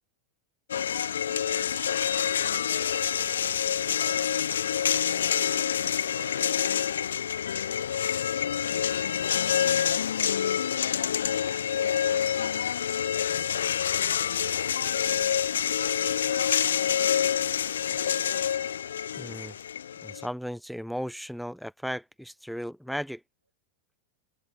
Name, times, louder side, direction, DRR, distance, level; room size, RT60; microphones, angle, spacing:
sound 1, 0.7-20.3, left 8 dB, 65° left, 0.3 m, -27 dB
voice 1, 0.7-3.6 3.9-5.7 6.1-7.6 8.6-10.4 11.3-13.6 14.2-16.4, right 4 dB, 80° right, 3.4 m, -52 dB
voice 2, 19.2-19.6 20.0-23.2, equal, ahead, 0.8 m, -35 dB
open air
figure-of-eight pair, 90°, 0 cm